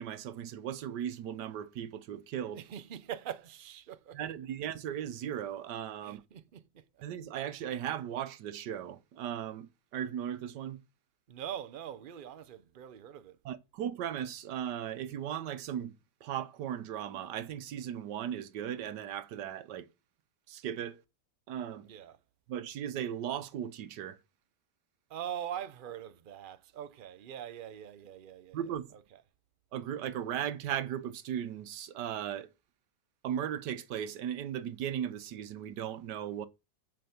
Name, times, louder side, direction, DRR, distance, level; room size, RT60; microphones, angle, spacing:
voice 1, 0.0-2.6 4.1-6.2 7.0-10.8 13.4-15.9 16.2-19.9 20.5-21.0 21.5-21.9 22.5-24.2 28.5-28.9 29.7-32.5 33.2-36.5, right 10 dB, 85° right, 1.5 m, -37 dB
voice 2, 2.5-4.2 6.0-7.0 11.3-13.4 21.8-22.2 25.1-29.2, right 10 dB, 70° right, 0.5 m, -43 dB
7.7 x 5.0 x 7.0 m
omnidirectional pair, 1.8 m